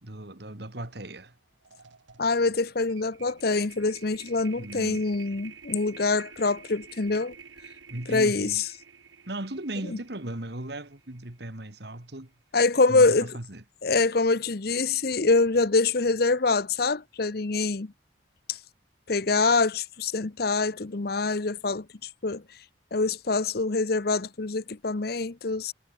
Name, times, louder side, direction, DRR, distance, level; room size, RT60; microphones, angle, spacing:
voice 1, 0.0-1.4 4.5-5.1 7.9-8.6 9.3-12.3 12.9-13.6, right 1 dB, 60° right, 2.3 m, -37 dB
sound 1, 1.1-1.3 1.6-11.9, right 6 dB, 75° right, 1.9 m, -50 dB
voice 2, 2.2-7.3 8.1-8.7 12.5-13.4 13.8-17.9 18.5-18.6 19.1-21.9 22.2-22.4 22.9-25.7, left 3 dB, 55° left, 0.8 m, -25 dB
head